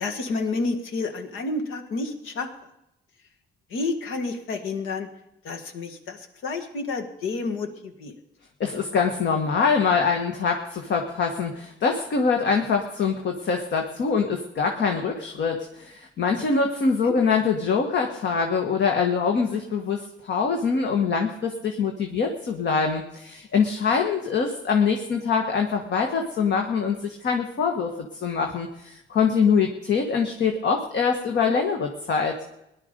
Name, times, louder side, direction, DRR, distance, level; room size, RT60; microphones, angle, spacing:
voice 1, 0.0-2.5 3.7-5.1 5.4-8.1 17.0-17.1, left 3 dB, 90° left, 5 dB, 1.7 m, -30 dB
voice 2, 8.6-32.3, left 5 dB, 65° left, 3 dB, 1.5 m, -24 dB
18.0 x 11.0 x 5.2 m, 0.86 s
cardioid pair, 90°, 20 cm